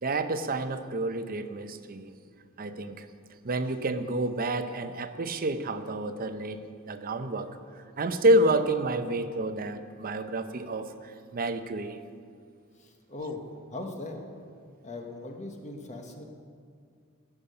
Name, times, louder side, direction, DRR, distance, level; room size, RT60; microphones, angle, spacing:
voice 1, 0.0-2.1 2.6-3.1 3.4-7.5 8.0-10.9 11.3-12.0, right 1 dB, 45° right, 9 dB, 0.7 m, -28 dB
voice 2, 12.8-13.4 13.7-14.2 14.8-16.2, left 2 dB, 35° left, 3 dB, 1.0 m, -39 dB
17.0 x 7.1 x 5.4 m, 2.2 s
head